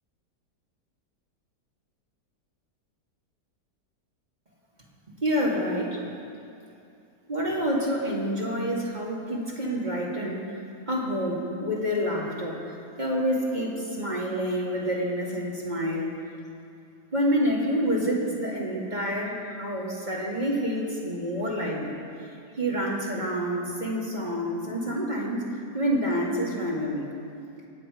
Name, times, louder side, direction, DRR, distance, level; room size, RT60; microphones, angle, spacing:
voice 1, 5.2-6.0 7.3-10.6 10.9-16.1 17.1-21.9 22.6-25.5 25.7-27.1, equal, 25° right, -4 dB, 2.1 m, -28 dB
24.0 x 8.7 x 4.9 m, 2.5 s
omnidirectional pair, 1.8 m